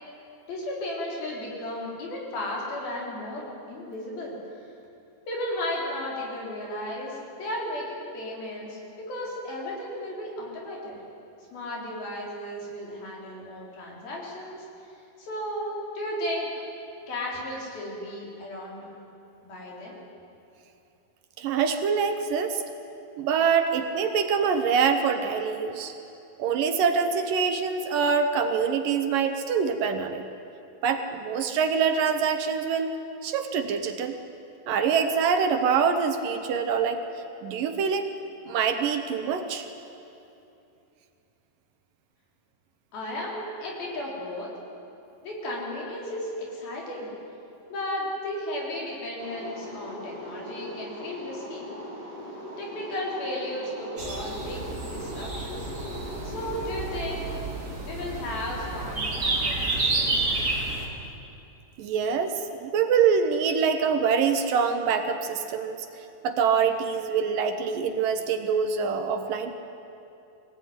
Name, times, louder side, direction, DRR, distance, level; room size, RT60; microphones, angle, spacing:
voice 1, 0.5-4.3 5.3-11.0 11.5-14.9 15.2-16.5 17.1-18.9 19.4-20.0 42.9-44.5 45.2-47.1 47.7-51.7 52.6-54.6 54.9-56.0 56.2-57.3 57.8-60.1, left 1 dB, 70° left, -3 dB, 6.1 m, -34 dB
voice 2, 21.4-22.6 23.2-25.9 26.4-30.2 30.8-32.9 33.2-34.1 34.7-37.0 37.4-38.1 38.5-39.7 61.8-65.8 66.2-69.5, right 6 dB, 70° right, 6 dB, 2.6 m, -25 dB
sound 1, 49.2-57.4, left 1 dB, 90° left, 6.1 m, -40 dB
sound 2, 54.0-60.9, right 2 dB, 25° right, 2.6 m, -30 dB
23.5 x 17.0 x 9.6 m, 2.8 s
omnidirectional pair, 4.4 m